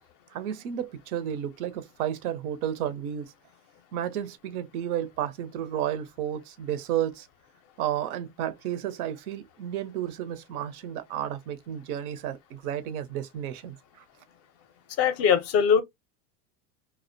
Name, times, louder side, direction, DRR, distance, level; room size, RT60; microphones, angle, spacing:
voice 1, 0.3-3.3 3.9-7.3 7.8-13.8, right 10 dB, 80° right, 0.7 m, -32 dB
voice 2, 15.0-15.8, left 7 dB, 35° left, 0.4 m, -21 dB
2.4 x 2.1 x 2.4 m
supercardioid pair, 130°, 44 cm